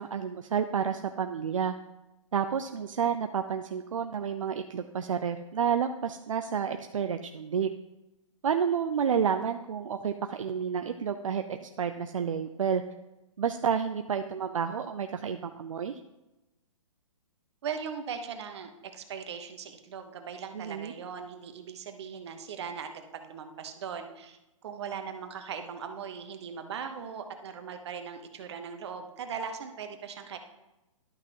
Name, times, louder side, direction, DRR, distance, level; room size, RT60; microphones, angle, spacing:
voice 1, 0.0-1.7 2.3-7.7 8.4-12.8 13.4-15.9 20.5-20.9, right 7 dB, 75° right, 7 dB, 0.5 m, -30 dB
voice 2, 17.6-30.4, right 6 dB, 55° right, 7 dB, 1.1 m, -39 dB
11.5 x 5.8 x 2.9 m, 1.0 s
figure-of-eight pair, 125°, 17 cm